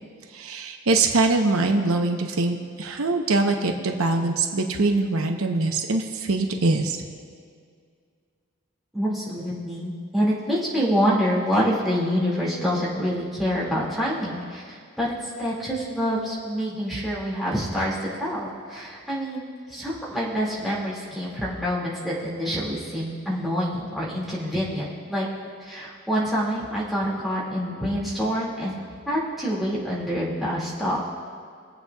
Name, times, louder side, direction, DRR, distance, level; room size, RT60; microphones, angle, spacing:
voice 1, 0.3-7.0, right 3 dB, 85° right, 3 dB, 0.8 m, -23 dB
voice 2, 8.9-25.3 25.7-28.7 29.1-31.0, equal, ahead, -8 dB, 2.1 m, -26 dB
22.5 x 8.2 x 2.3 m, 2.1 s
head